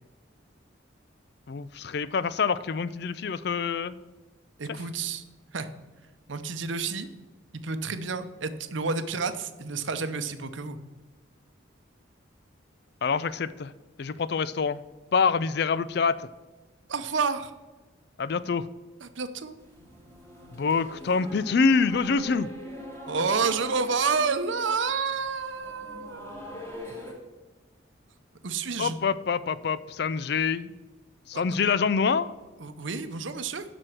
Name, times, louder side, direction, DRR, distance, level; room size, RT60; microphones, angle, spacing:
voice 1, 1.5-3.9 13.0-13.7 14.0-14.8 15.1-16.1 18.2-18.7 20.5-22.5 28.8-30.7 31.3-32.3, left 5 dB, 55° left, 16 dB, 0.4 m, -26 dB
voice 2, 4.6-5.2 5.5-5.7 6.3-7.1 7.5-10.8 16.9-17.5 19.0-19.6 23.1-26.4 28.4-29.0 31.3-31.4 32.6-33.6, right 4 dB, 70° right, 10 dB, 0.8 m, -29 dB
sound 1, 19.6-27.1, equal, 10° left, 2.4 m, -43 dB
7.6 x 6.2 x 7.7 m, 1.2 s
head